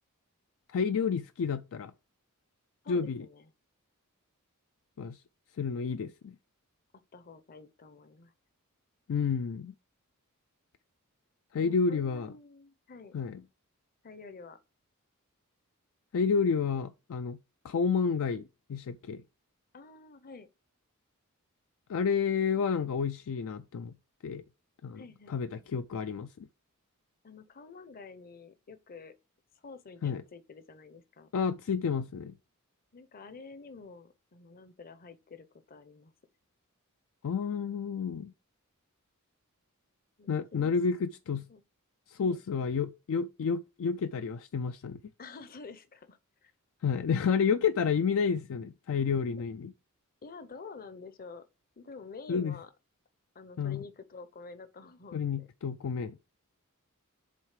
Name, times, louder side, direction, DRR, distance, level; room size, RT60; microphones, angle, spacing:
voice 1, 0.7-1.9 2.9-3.3 5.0-5.2 5.6-6.3 9.1-9.7 11.5-12.3 13.1-13.4 16.1-17.4 17.6-19.2 21.9-23.9 24.2-24.4 24.8-25.0 25.3-26.3 30.0-30.2 31.3-32.3 37.2-38.3 40.3-41.5 42.1-45.0 46.8-49.7 52.3-52.6 53.6-53.8 55.1-56.2, left 6 dB, 65° left, 0.4 m, -30 dB
voice 2, 2.8-3.5 7.1-8.3 11.6-13.2 14.0-14.6 19.7-20.5 25.0-25.7 27.2-29.1 29.6-31.3 32.9-36.1 40.2-40.7 41.5-41.6 42.2-42.4 45.2-46.5 50.2-51.4 51.8-52.7 53.3-55.5, left 4 dB, 40° left, 0.7 m, -49 dB
7.6 x 3.6 x 4.9 m
head